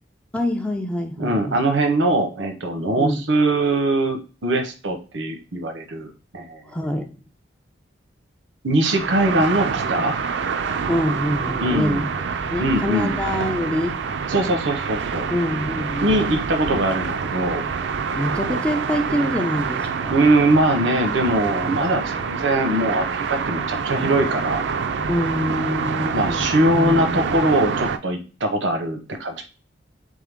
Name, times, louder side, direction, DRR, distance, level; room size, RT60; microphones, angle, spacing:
voice 1, 0.3-1.6 3.0-3.3 6.7-7.2 10.9-12.1 12.5-14.2 15.3-16.2 18.1-20.2 25.1-26.5 26.7-27.0, left 1 dB, 5° left, 4 dB, 0.3 m, -25 dB
voice 2, 1.2-6.6 8.6-10.2 11.6-12.0 12.6-13.2 14.3-15.3 16.0-17.6 20.1-24.6 26.1-29.4, right 1 dB, 85° right, 5 dB, 0.9 m, -21 dB
sound 1, 8.8-28.0, right 5 dB, 70° right, 0.4 m, -26 dB
3.7 x 3.6 x 3.5 m, 0.34 s
head